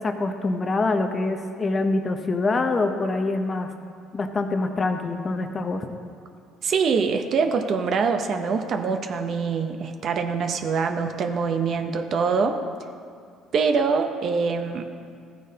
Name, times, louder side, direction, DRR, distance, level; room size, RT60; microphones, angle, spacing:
voice 1, 0.0-3.7 4.1-5.9, left 3 dB, 25° left, 6 dB, 0.7 m, -25 dB
voice 2, 6.6-12.6 13.5-14.8, right 5 dB, 50° right, 7 dB, 0.7 m, -24 dB
14.0 x 9.3 x 2.8 m, 2.2 s
cardioid pair, 115°, 0 cm